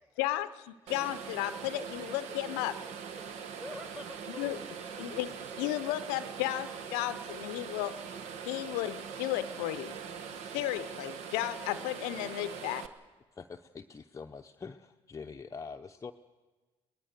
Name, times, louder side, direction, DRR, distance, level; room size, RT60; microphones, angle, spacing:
voice 1, 0.2-2.8 4.4-4.6 5.0-8.0 8.5-10.0 10.5-12.8, left 15 dB, 80° left, 13 dB, 0.6 m, -34 dB
sound 1, 0.9-12.9, right 7 dB, 70° right, 1.2 m, -42 dB
voice 2, 1.5-5.2, left 1 dB, 5° right, 10 dB, 1.8 m, -50 dB
voice 3, 13.3-16.1, left 5 dB, 25° left, 5 dB, 0.7 m, -45 dB
23.0 x 19.0 x 6.6 m, 1.3 s
hypercardioid pair, 60°, 12 cm